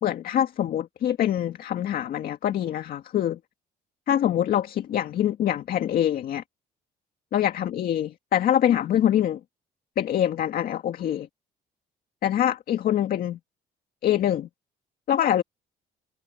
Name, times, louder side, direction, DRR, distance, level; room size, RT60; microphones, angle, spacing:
voice 1, 0.0-3.4 4.1-6.4 7.3-9.4 10.0-11.3 12.2-13.4 14.0-14.5 15.1-15.4, left 11 dB, 60° left, 2.1 m, -24 dB
cardioid pair, 110°, 17 cm